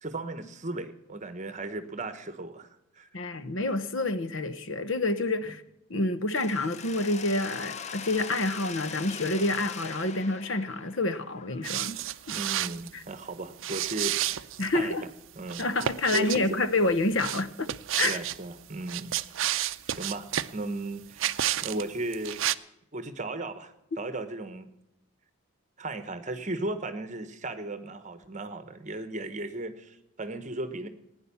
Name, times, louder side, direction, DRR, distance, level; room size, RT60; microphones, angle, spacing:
voice 1, 0.0-2.7 2.9-3.1 5.4-5.5 12.3-14.5 14.7-14.9 15.3-15.6 16.0-16.6 18.0-19.2 19.5-21.3 21.6-22.4 22.9-24.7 25.8-30.9, right 2 dB, 35° right, 1.1 m, -36 dB
voice 2, 3.1-5.6 5.9-12.0 12.3-12.4 12.9-13.0 14.6-15.0 15.6-17.7 18.0-18.2, left 2 dB, 60° left, 0.9 m, -28 dB
Mechanisms, 6.3-12.2, left 6 dB, 30° left, 0.5 m, -42 dB
sound 1, 11.6-12.9 13.6-14.7 15.5-16.4 17.2-18.4 18.8-20.5 21.2-21.8 22.1-22.5, right 12 dB, 65° right, 0.5 m, -30 dB
16.0 x 10.0 x 7.0 m
head